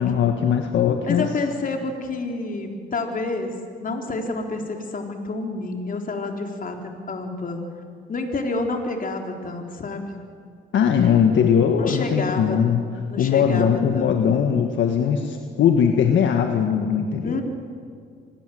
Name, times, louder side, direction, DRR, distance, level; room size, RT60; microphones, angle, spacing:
voice 1, 0.0-1.3 10.7-12.8 13.2-17.4, left 7 dB, 70° left, 4 dB, 1.7 m, -20 dB
voice 2, 1.1-3.5 3.8-7.6 8.1-10.1 11.8-12.6 13.1-14.2 17.2-17.4, left 3 dB, 45° left, 3 dB, 3.8 m, -29 dB
25.5 x 19.5 x 7.8 m, 2.2 s
cardioid pair, 90°, 20 cm